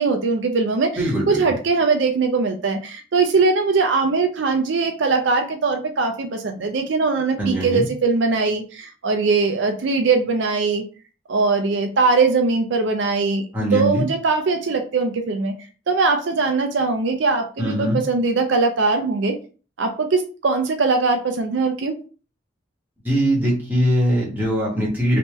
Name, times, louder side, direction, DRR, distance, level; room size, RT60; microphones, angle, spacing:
voice 1, 0.0-10.8 11.3-13.4 13.7-15.5 15.9-19.4 19.8-21.9, right 4 dB, 60° right, 4 dB, 0.4 m, -21 dB
voice 2, 1.0-1.4 7.4-7.9 13.5-14.0 17.6-18.0 23.0-25.2, equal, 10° right, -4 dB, 1.2 m, -21 dB
3.4 x 2.8 x 3.1 m, 0.36 s
head